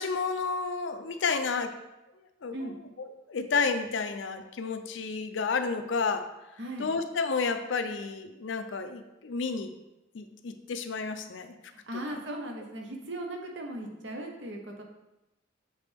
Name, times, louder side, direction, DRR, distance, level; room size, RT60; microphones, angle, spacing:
voice 1, 0.0-1.8 2.4-2.5 3.3-6.3 6.8-9.7 10.1-11.6, left 4 dB, 65° left, 8 dB, 0.5 m, -31 dB
voice 2, 6.6-6.9 11.7-14.8, right 1 dB, 60° right, 1 dB, 1.0 m, -38 dB
6.7 x 4.0 x 3.5 m, 0.96 s
head